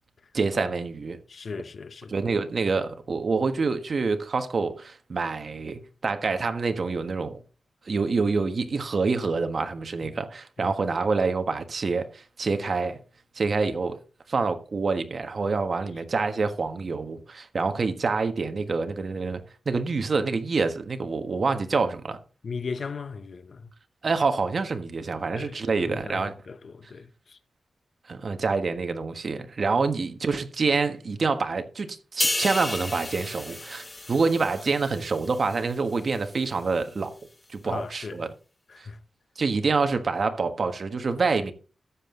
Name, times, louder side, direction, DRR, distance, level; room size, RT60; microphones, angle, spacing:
voice 1, 0.3-1.2 2.1-7.4 7.8-13.0 13.3-14.0 14.3-22.2 24.0-26.3 28.1-37.1 37.5-38.3 38.8-38.9 39.4-41.5, right 4 dB, 50° right, 1.4 m, -27 dB
voice 2, 1.3-2.2 10.6-10.8 22.4-23.7 25.3-27.4 37.6-38.2 38.7-39.0, left 4 dB, 55° left, 0.9 m, -37 dB
sound 1, 32.2-35.7 36.1-36.3, left 2 dB, 20° left, 0.9 m, -32 dB
13.0 x 7.8 x 3.8 m
wide cardioid pair, 115°, 0 cm